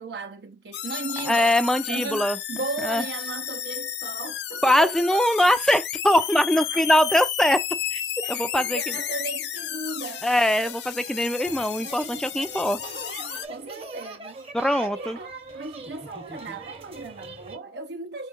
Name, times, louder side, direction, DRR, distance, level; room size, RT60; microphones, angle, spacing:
voice 1, 0.0-1.6 1.9-5.2 6.2-7.0 8.2-10.3 10.6-10.7 11.4-11.5 13.5-14.4 14.8-18.3, right 3 dB, 65° right, 0.6 m, -36 dB
sound 1, 0.7-13.5, left 10 dB, 65° left, 0.5 m, -33 dB
voice 2, 1.3-2.4 2.8-3.0 4.6-7.6 7.9-8.8 10.2-12.8 14.5-15.2, left 1 dB, 5° left, 0.3 m, -22 dB
sound 2, 11.4-17.6, right 3 dB, 35° right, 0.9 m, -41 dB
4.5 x 2.3 x 3.6 m
head